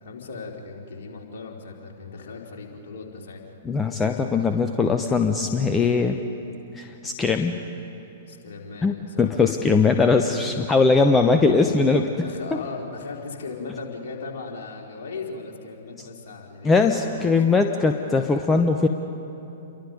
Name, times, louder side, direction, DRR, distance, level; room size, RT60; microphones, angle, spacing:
voice 1, 0.0-3.4 8.3-9.5 12.1-17.3, left 4 dB, 50° left, 0 dB, 3.5 m, -38 dB
voice 2, 3.6-6.2 6.7-7.6 8.8-12.1 16.6-18.9, left 4 dB, 10° left, 5 dB, 0.9 m, -20 dB
29.0 x 23.5 x 5.3 m, 3.0 s
figure-of-eight pair, 110°, 0 cm